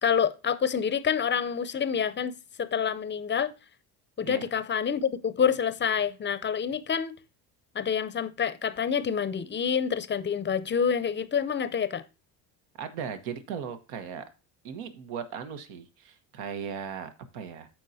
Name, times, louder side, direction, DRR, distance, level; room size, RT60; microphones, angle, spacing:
voice 1, 0.0-3.5 4.2-7.1 7.7-12.0, left 7 dB, 25° left, 0.6 m, -27 dB
voice 2, 12.8-14.2 14.6-17.7, right 7 dB, 80° right, 1.3 m, -37 dB
13.5 x 4.7 x 2.7 m
supercardioid pair, 75°, 47 cm